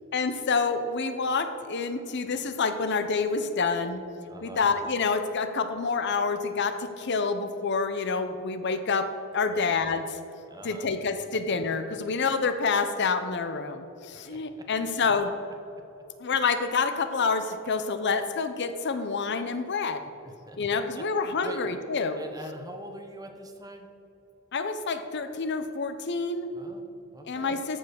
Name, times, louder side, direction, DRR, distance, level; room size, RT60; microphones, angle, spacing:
voice 1, 0.1-4.0 4.4-9.1 9.3-10.2 10.6-15.3 16.2-20.0 20.6-22.2 24.5-26.5 27.3-27.8, left 4 dB, 55° left, 9 dB, 0.7 m, -28 dB
voice 2, 4.3-4.7 9.5-9.7 10.5-10.9 14.3-14.4 20.2-20.6 20.9-21.0 21.4-21.6 22.2-23.9 26.5-27.6, right 1 dB, 20° right, 5 dB, 1.0 m, -43 dB
14.0 x 5.5 x 6.4 m, 2.7 s
head